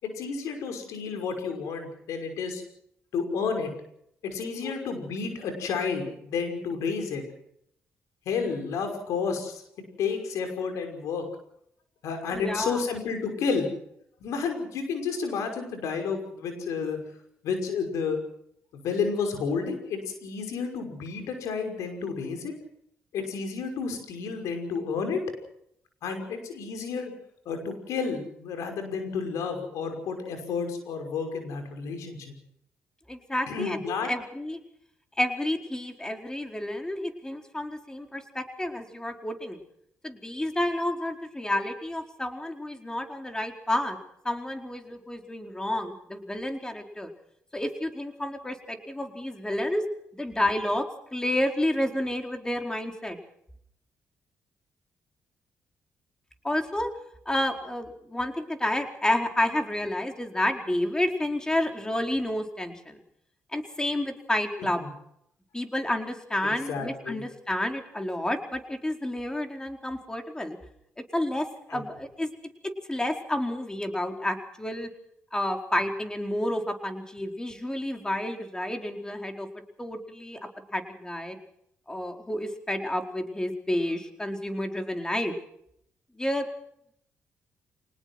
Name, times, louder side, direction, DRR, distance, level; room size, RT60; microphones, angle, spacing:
voice 1, 0.0-2.6 3.1-3.7 4.2-7.2 8.3-9.6 10.0-11.3 12.0-13.7 14.2-17.0 17.4-18.2 18.7-22.5 23.1-25.2 26.0-27.1 27.5-32.3 33.5-34.1 64.8-64.9 66.4-67.2 71.7-71.8, left 5 dB, 80° left, 6 dB, 5.7 m, -31 dB
voice 2, 4.6-5.0 12.3-12.8 33.1-34.6 35.2-39.6 40.0-44.0 44.2-47.1 47.5-49.8 50.1-50.8 51.1-53.2 56.4-56.9 57.3-63.0 63.5-64.8 65.5-70.6 71.1-72.3 72.9-74.9 75.3-79.5 79.8-80.4 80.7-81.4 81.9-85.3 86.2-86.5, left 1 dB, 15° left, 4 dB, 4.5 m, -30 dB
25.5 x 19.5 x 6.3 m, 0.72 s
supercardioid pair, 70°, 5 cm